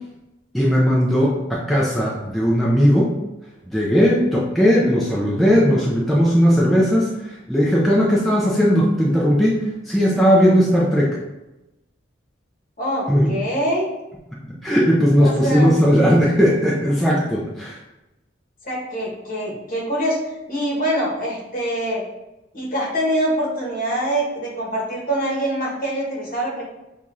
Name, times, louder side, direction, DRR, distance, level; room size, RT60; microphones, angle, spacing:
voice 1, 0.5-3.1 3.7-11.1 13.1-13.3 14.6-17.8, equal, ahead, -6 dB, 0.5 m, -17 dB
voice 2, 12.8-13.9 15.2-15.7 18.6-20.2 20.5-22.0 22.5-26.6, right 1 dB, 45° left, -4 dB, 1.2 m, -24 dB
6.4 x 2.4 x 2.7 m, 0.98 s
head